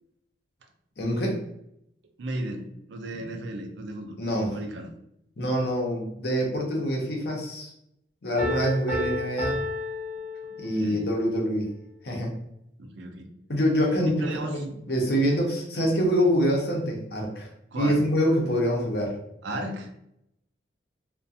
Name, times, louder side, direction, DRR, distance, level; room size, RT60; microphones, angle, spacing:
voice 1, 1.0-1.4 3.1-3.2 4.2-4.6 5.4-7.7 8.2-9.6 10.6-11.7 12.0-12.3 13.5-17.5 17.8-19.2 19.5-19.6, equal, 55° left, 0 dB, 0.6 m, -25 dB
voice 2, 2.2-4.2 4.5-4.9 10.6-11.1 12.8-13.3 14.2-14.7 17.7-18.0 19.4-19.9, right 1 dB, 70° right, 4 dB, 0.4 m, -35 dB
Piano, 8.4-11.0, left 2 dB, 10° right, 0.5 m, -31 dB
2.3 x 2.2 x 2.6 m, 0.77 s
head